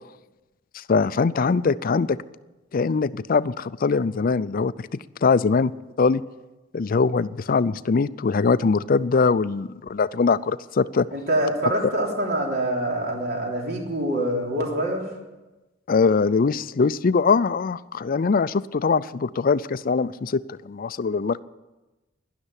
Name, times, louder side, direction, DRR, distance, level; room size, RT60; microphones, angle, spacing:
voice 1, 0.7-2.2 2.7-4.7 5.2-5.7 6.0-6.2 6.7-11.1 15.9-21.4, left 4 dB, 45° left, 17 dB, 0.4 m, -22 dB
voice 2, 11.1-15.1, right 1 dB, 55° right, 0 dB, 3.5 m, -25 dB
12.0 x 11.5 x 9.8 m, 1.1 s
head